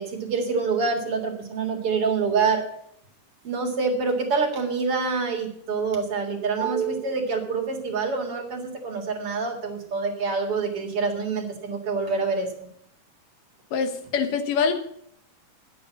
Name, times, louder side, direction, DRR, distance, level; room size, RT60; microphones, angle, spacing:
voice 1, 0.0-2.6 3.4-12.5, right 4 dB, 50° right, 1 dB, 2.6 m, -26 dB
voice 2, 13.7-14.7, left 6 dB, 85° left, 7 dB, 3.0 m, -24 dB
11.0 x 8.1 x 8.3 m, 0.70 s
omnidirectional pair, 3.7 m